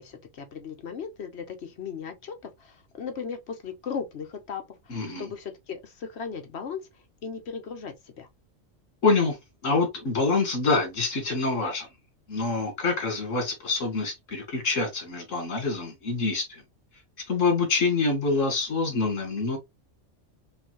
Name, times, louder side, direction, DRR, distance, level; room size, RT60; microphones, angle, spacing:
voice 1, 0.0-2.3 2.6-6.8 7.2-8.3, left 6 dB, 60° left, 1.0 m, -37 dB
voice 2, 4.9-5.3 9.0-9.4 9.6-11.9 12.3-16.6 17.3-19.6, left 3 dB, 80° left, 1.8 m, -26 dB
5.2 x 2.3 x 3.0 m
omnidirectional pair, 1.3 m